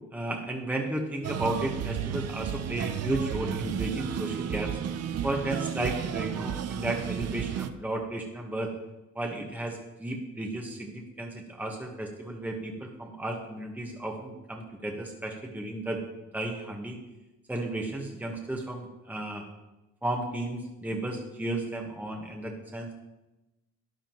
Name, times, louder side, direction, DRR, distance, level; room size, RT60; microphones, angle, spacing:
voice 1, 0.1-4.8 5.2-8.7 9.1-16.0 16.3-17.0 17.5-19.5 20.0-22.9, right 1 dB, 5° right, 0 dB, 1.4 m, -33 dB
sound 1, 1.2-7.7, right 9 dB, 55° right, 0.6 m, -33 dB
13.0 x 10.0 x 3.1 m, 1.0 s
cardioid pair, 90°, 30 cm